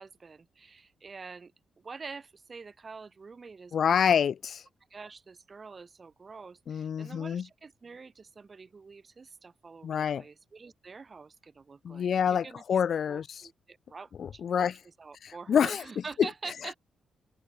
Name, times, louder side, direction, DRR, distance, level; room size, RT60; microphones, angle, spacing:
voice 1, 0.0-1.5 1.8-4.2 4.9-12.1 12.4-12.8 13.1-14.7 15.0-16.8, right 4 dB, 40° right, 3.0 m, -46 dB
voice 2, 3.7-4.6 6.7-7.5 9.8-10.2 11.8-13.5 14.2-14.8 15.2-15.8 16.2-16.3, left 8 dB, 65° left, 0.6 m, -27 dB
open air
cardioid pair, 80°, 0 cm